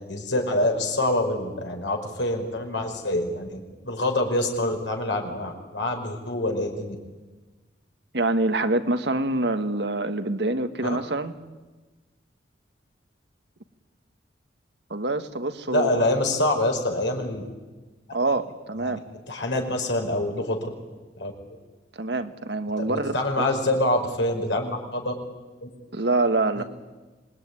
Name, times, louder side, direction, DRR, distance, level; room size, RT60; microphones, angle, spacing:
voice 1, 0.0-6.9 10.8-11.0 15.7-17.4 18.8-19.0 19.3-20.7 21.2-21.3 22.8-25.1 25.6-25.7 26.6-26.7, left 1 dB, 85° left, 2 dB, 5.2 m, -26 dB
voice 2, 8.1-11.3 14.9-16.0 18.1-19.0 21.9-23.5 25.9-26.6, right 2 dB, 65° right, 9 dB, 1.5 m, -26 dB
26.5 x 20.0 x 9.8 m, 1.3 s
head